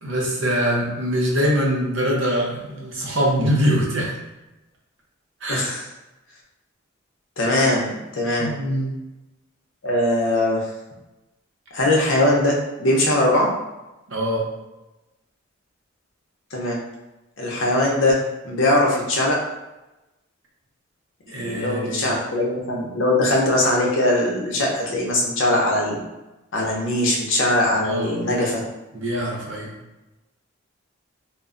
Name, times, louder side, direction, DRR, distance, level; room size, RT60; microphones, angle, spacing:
voice 1, 0.0-4.1 5.4-5.7 8.4-9.0 14.1-14.5 21.3-22.2 27.8-28.4 28.9-29.7, equal, 65° right, -2 dB, 0.7 m, -23 dB
voice 2, 5.5-5.8 7.4-8.5 9.8-10.6 11.7-13.5 16.5-16.8 17.4-19.4 21.3-26.0 26.5-28.6, left 1 dB, 65° left, -2 dB, 0.6 m, -21 dB
2.1 x 2.1 x 3.6 m, 1.0 s
head